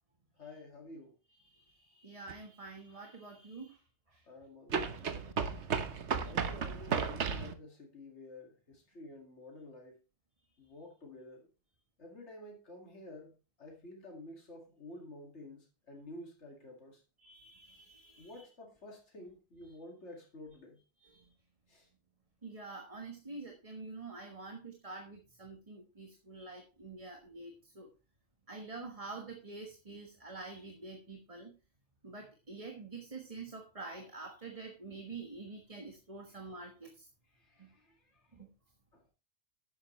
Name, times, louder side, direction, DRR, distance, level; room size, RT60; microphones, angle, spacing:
voice 1, 0.3-1.1 4.2-5.4 6.2-10.0 10.6-11.5 12.0-17.0 18.2-20.8 21.7-21.9 36.3-36.4 37.3-38.4 38.9-39.0, left 1 dB, 90° left, 2.5 m, -51 dB
voice 2, 1.3-3.8 4.1-4.2 17.2-18.4 21.0-21.3 22.4-27.9 28.5-31.5 32.0-37.1 37.6-37.7 38.3-38.5, right 3 dB, 30° right, 1.5 m, -47 dB
sound 1, 2.3-2.4 4.7-7.5, right 6 dB, 80° right, 1.4 m, -34 dB
11.5 x 9.5 x 3.2 m
omnidirectional pair, 1.1 m